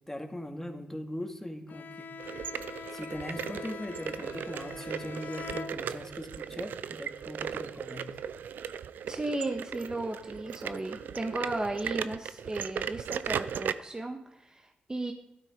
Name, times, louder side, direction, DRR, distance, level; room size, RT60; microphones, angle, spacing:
voice 1, 0.1-2.1 2.9-8.1, left 1 dB, 10° left, 5 dB, 2.2 m, -40 dB
Bowed string instrument, 1.7-6.3, left 5 dB, 65° left, 0.5 m, -43 dB
sound 1, 2.2-13.7, right 8 dB, 85° right, 0.5 m, -37 dB
voice 2, 9.1-15.1, right 2 dB, 25° right, 4 dB, 1.4 m, -35 dB
13.0 x 12.0 x 5.2 m, 0.87 s
cardioid pair, 55°, 3 cm